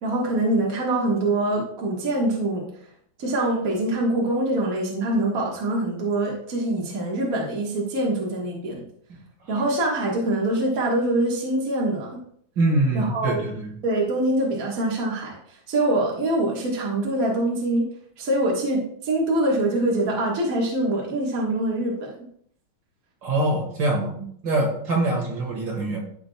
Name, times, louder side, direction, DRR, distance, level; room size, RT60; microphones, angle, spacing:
voice 1, 0.0-2.7 3.2-8.8 9.5-12.2 12.9-13.4 13.8-17.8 18.2-22.3 24.1-24.3, right 1 dB, 45° right, -3 dB, 1.9 m, -24 dB
voice 2, 12.6-13.7 23.2-24.1 24.4-26.0, right 2 dB, 60° right, -1 dB, 2.6 m, -24 dB
13.5 x 5.1 x 2.3 m, 0.64 s
omnidirectional pair, 2.3 m